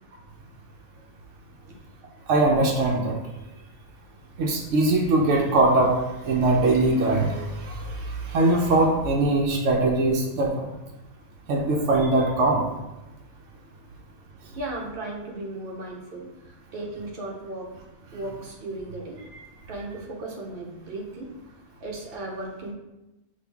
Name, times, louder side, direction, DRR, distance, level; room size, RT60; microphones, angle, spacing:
voice 1, 2.3-3.2 4.4-5.9 6.2-10.7 11.5-12.6, right 2 dB, 75° right, -1 dB, 1.0 m, -21 dB
voice 2, 14.5-16.3 16.7-17.8 18.1-19.2 19.7-21.3 21.8-22.7, right 2 dB, 50° right, -1 dB, 1.0 m, -35 dB
5.9 x 2.6 x 3.4 m, 0.98 s
omnidirectional pair, 1.3 m